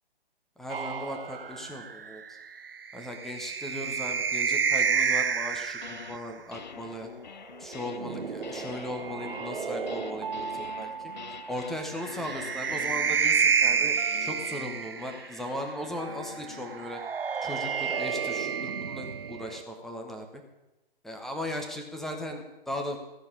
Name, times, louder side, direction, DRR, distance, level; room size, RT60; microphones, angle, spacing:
voice 1, 0.6-2.4 2.9-7.1 7.6-11.1 11.5-17.0 17.4-20.4 21.0-23.0, left 1 dB, ahead, 3 dB, 0.9 m, -37 dB
sound 1, 0.7-6.2 7.6-10.6 11.9-15.4 16.7-19.6, right 6 dB, 70° right, 0.8 m, -30 dB
sound 2, 5.5-6.2 6.5-16.9, left 7 dB, 50° left, 0.6 m, -46 dB
sound 3, 10.2-12.6 14.0-15.0 16.0-17.3 17.9-20.3, right 6 dB, 30° right, 0.4 m, -42 dB
15.5 x 6.6 x 8.6 m, 0.98 s
figure-of-eight pair, 135°, 30 cm